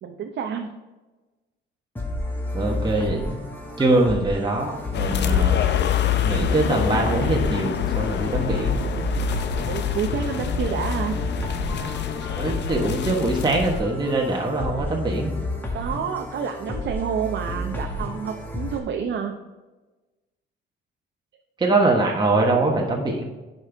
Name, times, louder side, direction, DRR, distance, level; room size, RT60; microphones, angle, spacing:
voice 1, 0.0-0.7 9.7-11.2 15.7-19.3, right 7 dB, 65° right, 4 dB, 0.7 m, -29 dB
sound 1, 2.0-18.8, left 1 dB, 10° left, 1.8 m, -31 dB
voice 2, 2.5-3.3 3.8-5.6 6.2-8.8 12.4-15.3 21.6-23.3, right 2 dB, 20° right, -1 dB, 1.3 m, -23 dB
sound 2, 4.9-13.8, left 9 dB, 60° left, 0.6 m, -26 dB
10.0 x 5.5 x 3.4 m, 1.2 s
cardioid pair, 90°, 20 cm